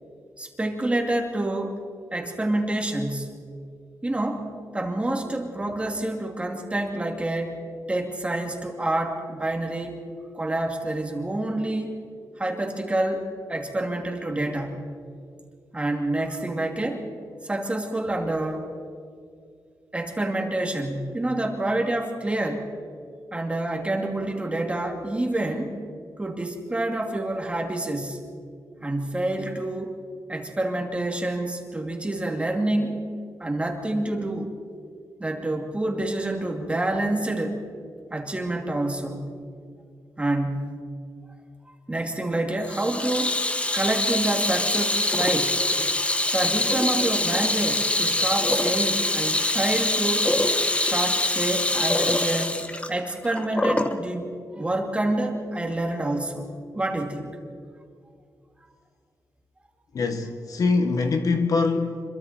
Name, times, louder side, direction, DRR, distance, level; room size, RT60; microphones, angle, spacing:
voice 1, 0.4-1.8 2.1-3.3 4.0-4.5 4.7-7.6 7.9-10.0 10.3-12.0 12.4-14.8 15.7-17.0 17.4-18.7 19.9-22.7 23.3-25.8 26.2-28.2 28.8-29.9 30.3-33.1 33.4-34.5 35.2-37.6 38.1-39.3 40.2-40.7 41.7-45.7 46.3-50.3 50.8-52.6 52.9-56.5 56.7-57.4, right 1 dB, 15° right, 2.8 m, -27 dB
Water tap faucet / Sink (filling or washing), 42.6-54.0, left 2 dB, 20° left, 1.3 m, -24 dB
voice 2, 59.9-62.0, left 4 dB, 60° left, 1.6 m, -23 dB
26.0 x 23.0 x 4.5 m
cardioid pair, 100°, 7 cm